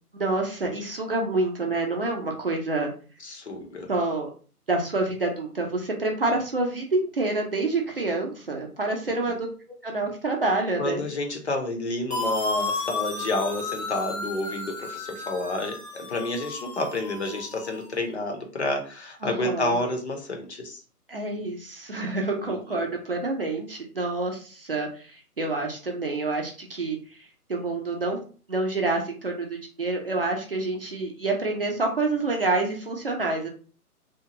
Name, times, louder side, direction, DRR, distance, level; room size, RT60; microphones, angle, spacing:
voice 1, 0.2-2.9 3.9-4.3 4.7-9.5 9.8-11.0 19.2-19.8 21.1-28.2 28.5-33.5, right 2 dB, 40° right, 1 dB, 0.6 m, -27 dB
voice 2, 3.2-3.9 10.8-20.8 22.4-22.9, left 2 dB, 45° left, 3 dB, 0.8 m, -30 dB
sound 1, 12.1-17.9, left 3 dB, 75° left, 1.3 m, -33 dB
2.8 x 2.3 x 2.8 m, 0.39 s
figure-of-eight pair, 145°, 46 cm